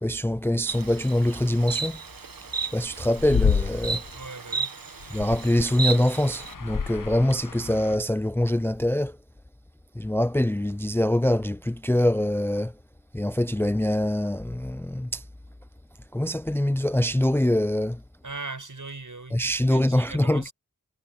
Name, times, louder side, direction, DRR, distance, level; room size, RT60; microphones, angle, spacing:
voice 1, 0.0-2.0 2.7-4.0 5.1-9.2 9.9-12.7 13.1-15.2 16.1-18.0 19.3-20.5, left 1 dB, 5° left, 0.4 m, -24 dB
Insect, 0.7-6.5, right 5 dB, 85° right, 1.2 m, -34 dB
sound 1, 2.1-4.2 4.9-8.0, left 5 dB, 70° left, 1.1 m, -29 dB
voice 2, 4.1-4.8 18.2-20.5, right 3 dB, 65° right, 7.2 m, -39 dB
wide cardioid pair, 45°, 33 cm